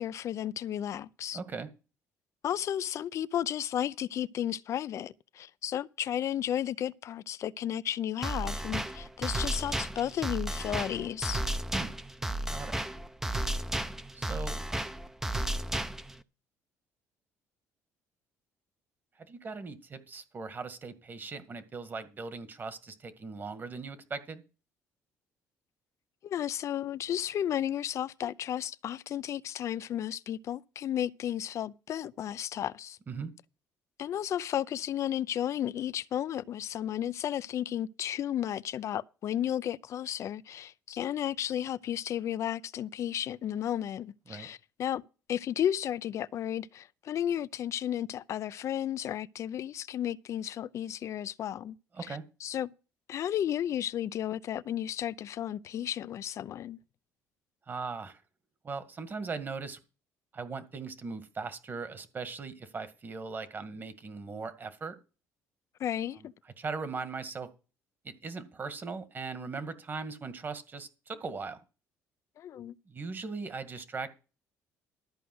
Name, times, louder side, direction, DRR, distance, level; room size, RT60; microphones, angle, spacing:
voice 1, 0.0-1.4 2.4-11.4 26.2-33.0 34.0-45.0 45.3-51.7 52.0-52.7 53.1-56.8 65.8-66.3 72.4-72.8, left 10 dB, 55° left, 0.5 m, -33 dB
voice 2, 1.3-1.7 11.7-11.9 12.5-12.8 14.1-14.6 19.2-24.4 33.1-33.3 44.3-44.5 51.9-52.2 57.7-58.2 58.6-59.8 60.3-65.0 66.2-67.5 68.0-71.6 72.9-74.1, right 4 dB, 35° right, 1.9 m, -39 dB
sound 1, 8.2-16.2, right 1 dB, 5° right, 0.7 m, -33 dB
13.0 x 4.9 x 7.8 m
cardioid pair, 95°, 6 cm